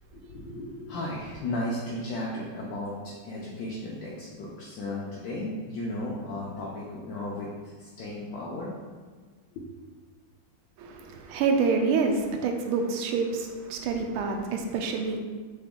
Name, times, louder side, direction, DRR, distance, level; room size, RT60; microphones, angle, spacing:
voice 1, 0.1-8.7 9.5-9.6 10.9-11.3, left 1 dB, 70° left, -4 dB, 1.2 m, -35 dB
voice 2, 10.8-15.2, right 4 dB, 90° right, 4 dB, 1.5 m, -27 dB
4.0 x 3.4 x 3.6 m, 1.4 s
omnidirectional pair, 2.3 m